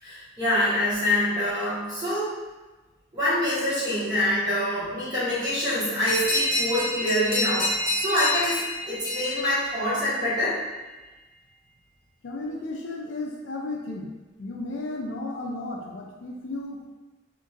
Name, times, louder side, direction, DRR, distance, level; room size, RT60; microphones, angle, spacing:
voice 1, 0.0-2.4 3.1-10.6, left 1 dB, 20° right, -12 dB, 1.2 m, -26 dB
sound 1, 6.1-10.3, left 1 dB, 50° left, 1.0 m, -28 dB
voice 2, 12.2-14.1 14.4-16.9, left 2 dB, 70° left, 0 dB, 0.4 m, -34 dB
2.8 x 2.5 x 2.6 m, 1.2 s
head